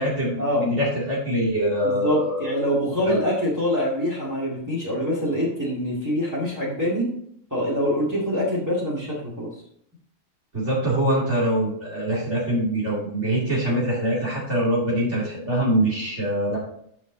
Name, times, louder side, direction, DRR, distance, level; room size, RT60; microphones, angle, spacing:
voice 1, 0.0-2.6 3.0-3.2 10.5-16.6, right 1 dB, 60° right, -5 dB, 2.8 m, -24 dB
voice 2, 1.8-7.1 7.5-9.5, equal, 15° right, -7 dB, 2.1 m, -25 dB
9.1 x 5.8 x 3.9 m, 0.69 s
omnidirectional pair, 1.4 m